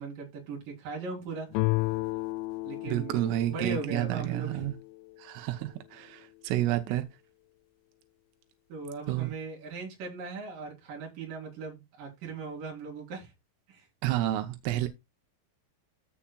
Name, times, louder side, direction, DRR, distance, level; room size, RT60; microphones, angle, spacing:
voice 1, 0.0-1.5 2.6-4.7 6.9-7.0 8.7-13.3 13.7-13.9, right 4 dB, 45° right, 4.8 m, -39 dB
sound 1, 1.5-5.1, left 20 dB, 80° left, 2.9 m, -33 dB
voice 2, 2.9-4.8 5.2-7.1 9.1-9.3 14.0-14.9, right 14 dB, 90° right, 3.5 m, -30 dB
14.5 x 7.1 x 2.3 m
omnidirectional pair, 5.7 m